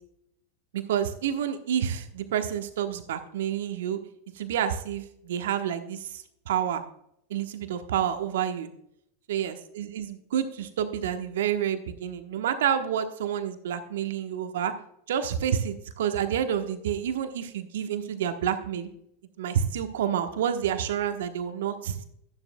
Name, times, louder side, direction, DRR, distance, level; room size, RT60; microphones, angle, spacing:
voice 1, 0.7-4.0 4.3-6.8 7.3-8.7 9.3-14.7 15.1-18.9 19.4-22.0, right 9 dB, 65° right, 8 dB, 1.1 m, -29 dB
12.0 x 11.0 x 2.2 m, 0.74 s
hypercardioid pair, 90°, 0 cm